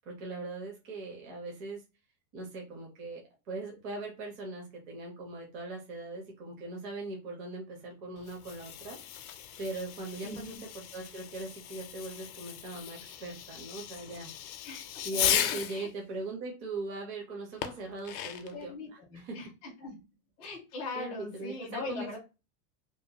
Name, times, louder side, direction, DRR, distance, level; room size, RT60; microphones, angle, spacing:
voice 1, 0.1-1.8 2.3-9.0 9.6-10.5 10.9-14.3 15.0-19.5 20.9-22.2, right 2 dB, 35° right, 0 dB, 0.6 m, -40 dB
Fireworks, 8.2-15.8 17.6-18.6, left 11 dB, 65° left, 0.5 m, -36 dB
voice 2, 10.2-10.6 14.6-15.3 15.7-15.9 18.5-20.0 20.4-22.2, left 2 dB, 15° left, -4 dB, 0.3 m, -41 dB
2.7 x 2.0 x 2.8 m, 0.28 s
supercardioid pair, 165°, 45 cm